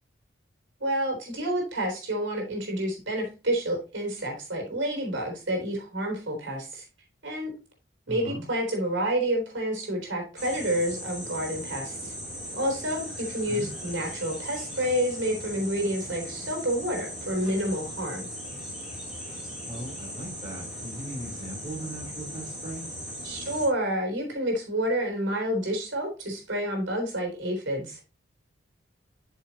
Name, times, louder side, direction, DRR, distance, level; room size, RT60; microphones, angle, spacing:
voice 1, 0.8-6.8 7.2-7.5 8.1-12.1 12.5-18.3 23.2-28.0, right 1 dB, 80° right, 2 dB, 3.7 m, -29 dB
voice 2, 8.1-8.4 13.5-13.7 19.7-22.8, right 1 dB, 30° right, -4 dB, 3.7 m, -38 dB
sound 1, 10.4-23.7, equal, 5° right, 4.2 m, -38 dB
8.2 x 6.6 x 2.9 m, 0.31 s
head